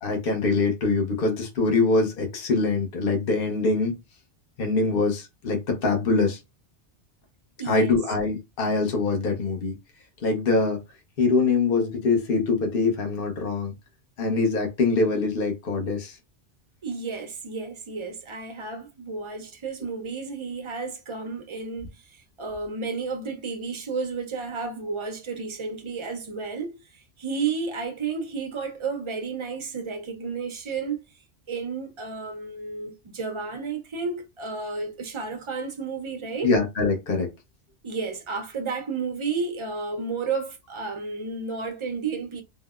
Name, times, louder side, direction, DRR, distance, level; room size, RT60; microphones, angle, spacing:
voice 1, 0.0-4.0 4.6-6.4 7.6-9.7 10.2-10.8 11.2-13.7 14.2-16.2 36.4-37.3, left 3 dB, 55° left, 1.0 m, -23 dB
voice 2, 7.6-8.0 16.8-31.0 31.5-36.5 37.8-42.4, right 4 dB, 40° right, 0.4 m, -32 dB
3.7 x 2.1 x 2.3 m
omnidirectional pair, 1.2 m